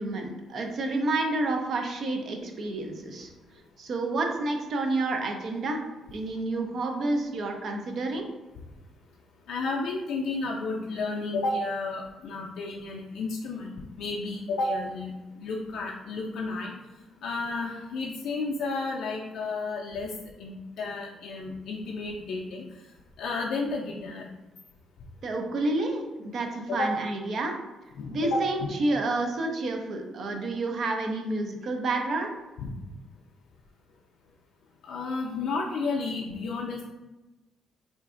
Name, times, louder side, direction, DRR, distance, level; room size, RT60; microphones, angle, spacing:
voice 1, 0.0-3.3 3.8-5.8 6.1-8.3 25.2-27.5 28.1-32.3, right 2 dB, 60° right, 3 dB, 0.5 m, -29 dB
voice 2, 9.5-16.7 17.2-20.1 20.4-22.6 23.2-24.3 26.7-26.9 28.0-28.4 34.8-36.8, left 3 dB, 75° left, -2 dB, 0.3 m, -32 dB
3.8 x 2.4 x 2.4 m, 1.1 s
cardioid pair, 90°, 0 cm